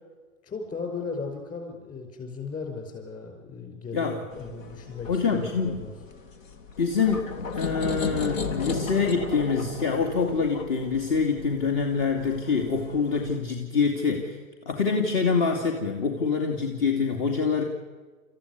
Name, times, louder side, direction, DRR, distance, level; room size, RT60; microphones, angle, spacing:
voice 1, 0.4-5.9, left 4 dB, 20° left, 5 dB, 5.6 m, -36 dB
sound 1, 4.3-13.4, left 4 dB, 65° left, 2.5 m, -36 dB
voice 2, 5.1-5.8 6.8-14.4 14.7-17.6, left 5 dB, 40° left, 3 dB, 2.7 m, -25 dB
28.5 x 14.5 x 9.6 m, 1.4 s
hypercardioid pair, 145°, 42 cm